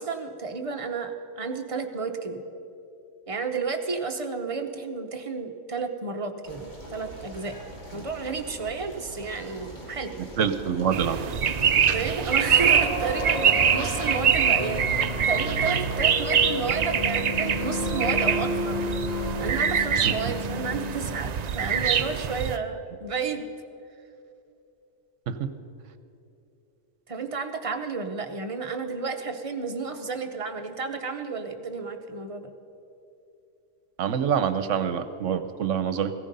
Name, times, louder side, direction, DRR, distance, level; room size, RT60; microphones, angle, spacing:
voice 1, 0.0-2.4 3.3-7.6 7.9-10.1 11.9-18.8 19.4-23.5 27.1-32.5, right 4 dB, 30° right, 4 dB, 0.8 m, -32 dB
sound 1, 6.4-12.8, right 1 dB, 35° left, 3.0 m, -42 dB
voice 2, 10.2-11.2 20.0-20.3 25.3-25.5 34.0-36.1, right 8 dB, 70° right, 11 dB, 1.1 m, -26 dB
sound 2, 10.9-22.6, right 7 dB, 90° right, 0.3 m, -24 dB
sound 3, 12.4-21.2, left 2 dB, 85° left, 5.4 m, -32 dB
16.0 x 14.0 x 5.4 m, 2.7 s
omnidirectional pair, 1.3 m